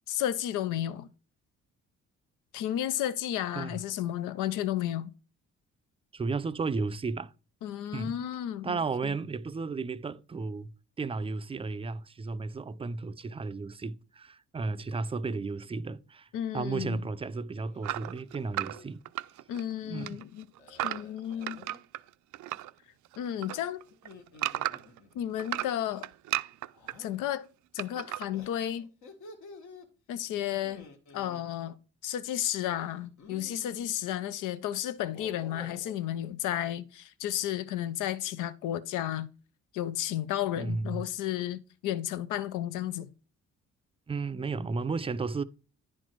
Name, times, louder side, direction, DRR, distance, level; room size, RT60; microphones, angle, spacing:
voice 1, 0.1-1.1 2.5-5.1 7.6-9.2 16.3-17.0 19.5-21.7 23.2-23.8 25.1-26.1 27.0-27.5 27.7-28.9 30.1-30.9 31.1-31.8 32.0-39.3 39.7-43.1, left 11 dB, 90° left, 0.6 m, -33 dB
voice 2, 6.1-7.3 7.9-8.2 8.6-10.7 11.0-16.3 16.5-19.0 19.8-20.2 40.6-41.1 44.1-45.4, right 4 dB, 20° right, 0.4 m, -33 dB
sound 1, 17.6-18.0 18.4-18.9 20.6-21.8 23.9-25.3 26.7-27.1 28.3-29.9 30.6-31.4 32.9-34.0 35.0-36.0, left 3 dB, 70° left, 1.6 m, -51 dB
sound 2, 17.8-19.7 20.0-22.7 23.1-25.0 25.4-27.0 27.8-28.3, right 15 dB, 70° right, 0.5 m, -34 dB
10.0 x 4.4 x 4.5 m
cardioid pair, 90°, 30 cm